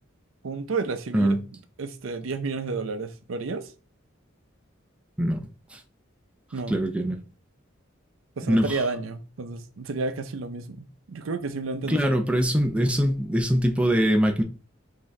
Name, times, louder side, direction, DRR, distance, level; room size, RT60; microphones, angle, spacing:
voice 1, 0.4-1.4 1.8-3.7 6.5-6.7 8.4-12.0, right 4 dB, 80° right, 0.5 m, -31 dB
voice 2, 5.2-5.8 6.7-7.2 8.4-8.8 11.9-14.4, equal, 5° right, 0.4 m, -23 dB
5.5 x 2.8 x 3.2 m
head